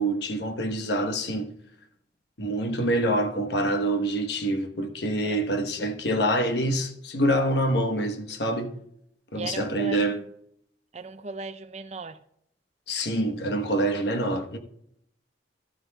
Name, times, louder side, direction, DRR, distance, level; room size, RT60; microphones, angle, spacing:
voice 1, 0.0-1.5 2.4-8.8 9.3-10.2 12.9-14.6, right 1 dB, 60° left, 1.0 m, -26 dB
voice 2, 9.3-10.2 10.9-12.2, right 3 dB, 35° right, 0.5 m, -37 dB
13.5 x 8.9 x 2.2 m
head